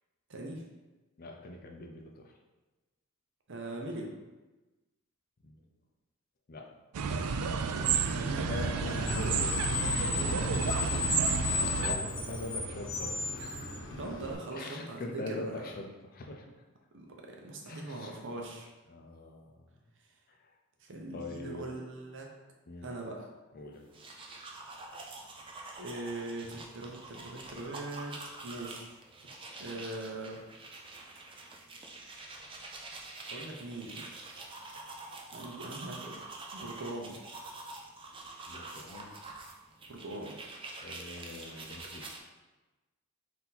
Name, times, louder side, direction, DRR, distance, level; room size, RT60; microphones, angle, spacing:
voice 1, 0.3-0.6 3.5-4.1 7.7-8.5 10.0-11.1 14.0-15.7 16.9-18.7 20.8-22.3 22.8-23.3 25.8-28.1 28.4-28.9 29.6-30.4 33.3-34.0 35.3-36.2 36.5-37.2 39.9-40.4, right 2 dB, 55° right, 0 dB, 0.7 m, -41 dB
voice 2, 1.2-2.4 5.4-5.7 6.5-6.7 8.5-10.1 11.5-14.0 14.5-16.5 17.7-18.2 18.9-19.7 20.3-20.6 21.1-21.8 22.7-23.0 23.5-23.9 38.5-39.2 40.8-42.3, left 2 dB, 40° left, 2 dB, 0.5 m, -43 dB
sound 1, 6.9-11.9, right 5 dB, 85° right, 0.4 m, -31 dB
Screech, 8.5-14.3, left 4 dB, 55° left, 0.9 m, -34 dB
sound 2, 23.8-42.2, right 3 dB, 25° right, 0.4 m, -46 dB
4.2 x 2.7 x 4.0 m, 1.1 s
head